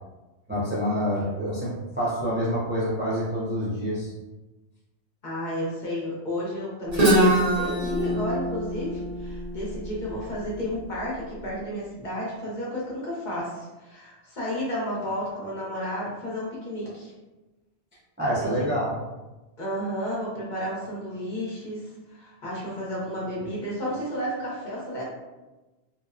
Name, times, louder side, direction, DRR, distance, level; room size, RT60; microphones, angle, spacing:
voice 1, 0.5-4.1 18.2-18.9, equal, 15° right, -8 dB, 0.4 m, -27 dB
voice 2, 5.2-17.1 18.3-18.7 19.6-25.1, equal, 50° left, -6 dB, 0.7 m, -32 dB
Guitar, 6.9-10.7, right 1 dB, 40° right, 0.8 m, -24 dB
2.8 x 2.0 x 2.4 m, 1.1 s
omnidirectional pair, 1.2 m